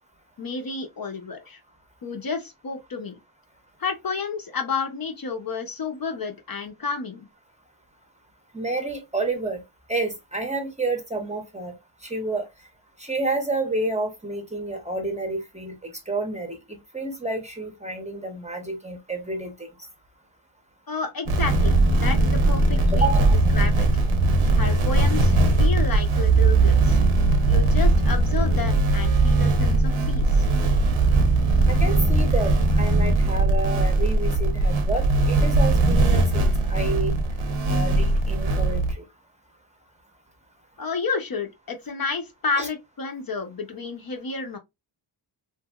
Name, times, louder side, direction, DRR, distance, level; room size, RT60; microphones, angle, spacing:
voice 1, 0.4-1.6 2.0-3.2 3.8-7.3 20.9-23.1 23.5-23.9 24.5-27.0 27.5-30.5 40.8-44.6, left 4 dB, 50° left, 0.6 m, -31 dB
voice 2, 8.5-9.6 9.9-11.7 12.0-12.5 13.0-19.7 22.9-23.4 31.7-37.1 37.7-39.0 42.6-42.7, right 2 dB, 15° right, 0.6 m, -29 dB
sound 1, 21.3-38.9, right 2 dB, 80° right, 0.8 m, -20 dB
2.8 x 2.6 x 2.2 m
wide cardioid pair, 120°, 48 cm